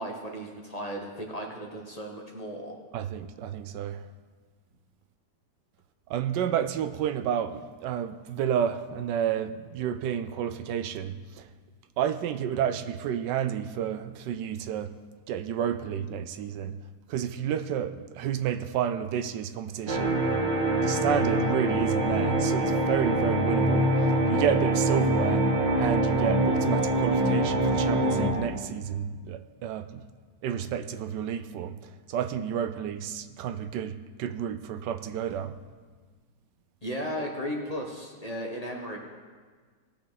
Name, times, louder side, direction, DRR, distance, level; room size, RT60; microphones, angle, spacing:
voice 1, 0.0-2.8 36.8-39.0, equal, 25° left, 1.1 m, -35 dB
voice 2, 2.9-4.0 6.1-11.5 12.0-15.0 15.3-20.3 20.7-23.9 24.3-25.5 25.8-30.1 30.4-35.6, right 9 dB, 85° right, 1.3 m, -30 dB
sound 1, 19.9-28.3, right 1 dB, 15° right, 2.2 m, -24 dB
19.0 x 6.8 x 4.0 m
omnidirectional pair, 1.8 m